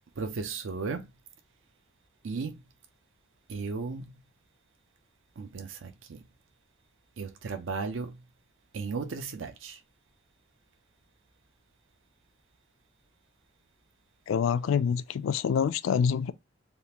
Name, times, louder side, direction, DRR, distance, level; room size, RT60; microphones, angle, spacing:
voice 1, 0.2-1.1 2.2-2.6 3.5-4.0 5.4-6.2 7.2-8.2 8.7-9.8, right 4 dB, 80° right, 0.5 m, -35 dB
voice 2, 14.3-16.3, left 7 dB, 85° left, 0.3 m, -26 dB
3.5 x 2.4 x 2.8 m
head